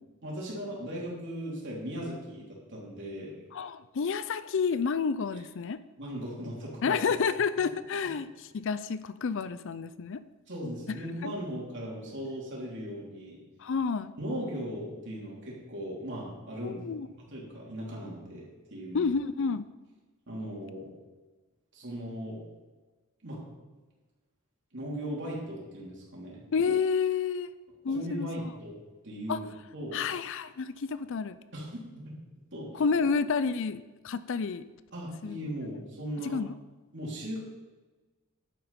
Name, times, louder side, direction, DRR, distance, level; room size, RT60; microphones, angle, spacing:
voice 1, 0.2-3.3 6.0-7.0 10.5-13.4 14.2-16.9 17.1-18.4 18.7-19.1 20.3-20.9 21.7-22.4 23.2-23.4 24.7-26.4 27.9-28.7 29.0-30.0 31.5-32.2 32.5-32.8 34.9-36.4 36.9-37.4, equal, 55° right, -4 dB, 3.6 m, -38 dB
voice 2, 3.5-5.8 6.8-8.3 8.5-10.2 11.2-11.3 13.6-14.1 16.6-17.1 18.9-19.7 26.5-27.5 27.8-28.3 29.3-29.4 29.9-31.4 32.8-34.6 35.2-35.4 36.3-36.5, left 5 dB, 60° left, 14 dB, 0.4 m, -29 dB
11.0 x 9.0 x 4.3 m, 1.2 s
head